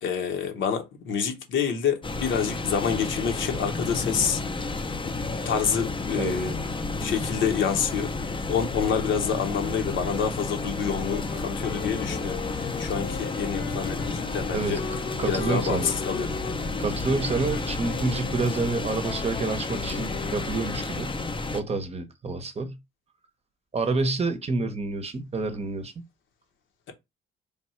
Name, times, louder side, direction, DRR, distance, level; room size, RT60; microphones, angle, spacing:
voice 1, 0.0-4.7 5.4-6.6 7.0-8.1 8.5-14.8 15.3-16.5, left 7 dB, 75° left, 1.1 m, -28 dB
sound 1, 2.0-21.6, left 3 dB, 25° left, 0.6 m, -31 dB
Wind instrument woodwind instrument, 10.9-20.5, left 6 dB, 50° left, 0.9 m, -38 dB
voice 2, 15.2-15.9 16.8-21.2 21.5-22.8 23.7-25.9, right 3 dB, 30° right, 0.8 m, -28 dB
3.5 x 2.3 x 4.3 m
cardioid pair, 90°, 20 cm